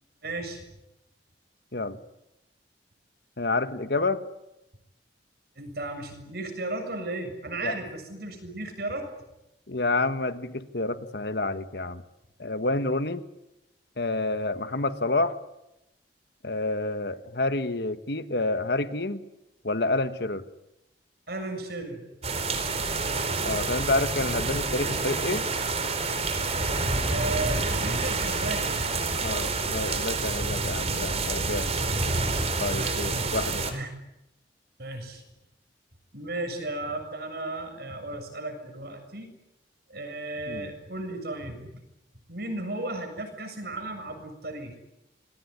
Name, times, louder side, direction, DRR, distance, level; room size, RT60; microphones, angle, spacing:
voice 1, 0.2-0.6 5.6-9.1 21.3-22.0 27.1-28.9 32.7-33.4 33.7-33.9 34.8-35.2 36.1-39.3 39.9-41.7 42.3-44.8, right 2 dB, 60° right, 6 dB, 7.4 m, -35 dB
voice 2, 3.4-4.2 7.6-7.8 9.7-12.0 12.4-13.2 14.0-15.4 16.4-19.2 19.6-20.4 23.4-25.5 29.2-31.7 32.6-33.7 40.5-40.7, left 2 dB, 65° left, 10 dB, 1.6 m, -28 dB
sound 1, 22.2-33.7, right 3 dB, 35° right, 4.0 m, -28 dB
28.0 x 21.5 x 9.9 m, 0.90 s
head